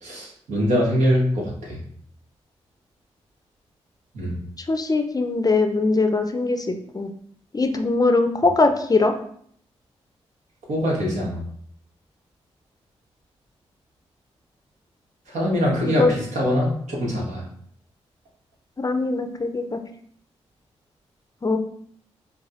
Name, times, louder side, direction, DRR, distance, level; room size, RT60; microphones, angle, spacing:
voice 1, 0.0-1.8 4.1-4.3 10.7-11.4 15.3-17.4, equal, 75° right, -3 dB, 1.2 m, -23 dB
voice 2, 4.7-6.7 6.9-7.1 7.5-9.1 15.8-16.1 18.8-19.8 21.4-21.6, left 3 dB, 30° left, 6 dB, 0.5 m, -21 dB
4.8 x 2.2 x 2.4 m, 0.62 s
supercardioid pair, 40°, 12 cm